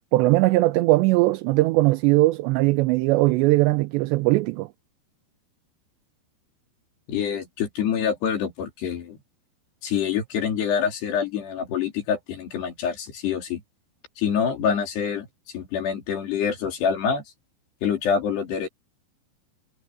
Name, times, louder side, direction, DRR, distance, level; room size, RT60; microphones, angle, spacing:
voice 1, 0.1-4.7, right 19 dB, 80° right, 2.8 m, -20 dB
voice 2, 7.1-9.2 9.8-13.6 14.2-15.3 15.5-17.2 17.8-18.7, left 7 dB, 65° left, 5.5 m, -26 dB
omnidirectional pair, 5.2 m